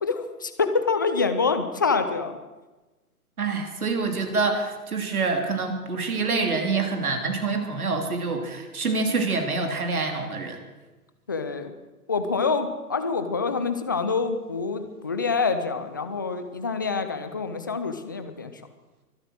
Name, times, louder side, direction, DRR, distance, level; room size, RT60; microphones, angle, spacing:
voice 1, 0.0-2.4 11.3-11.7 12.1-18.5, left 4 dB, 15° left, 9 dB, 0.4 m, -26 dB
voice 2, 3.4-10.6, right 4 dB, 65° right, 4 dB, 3.4 m, -26 dB
23.5 x 8.9 x 6.4 m, 1.2 s
figure-of-eight pair, 125°, 46 cm